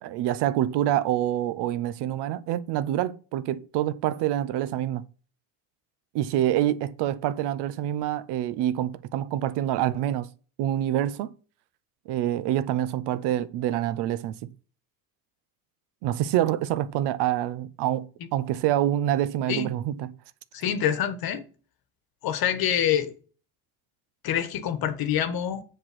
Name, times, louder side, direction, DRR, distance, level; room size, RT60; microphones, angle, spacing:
voice 1, 0.0-5.1 6.1-10.3 10.6-11.3 12.1-14.5 16.0-20.1, right 12 dB, 75° right, 0.8 m, -26 dB
voice 2, 20.5-21.5 22.2-23.1 24.2-25.6, left 9 dB, 60° left, 1.2 m, -26 dB
7.5 x 4.5 x 6.1 m
supercardioid pair, 95°, 42 cm